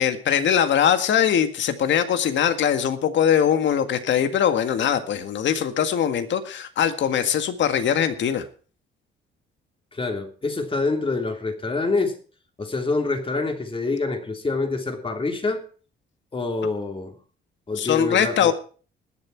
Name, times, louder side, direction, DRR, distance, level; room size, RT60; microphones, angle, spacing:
voice 1, 0.0-8.4 17.8-18.5, left 8 dB, 70° left, 1.8 m, -21 dB
voice 2, 9.9-12.2 12.6-15.6 16.3-17.1 17.7-18.5, left 3 dB, 25° left, 3.1 m, -26 dB
20.5 x 7.4 x 4.6 m
cardioid pair, 90°, 20 cm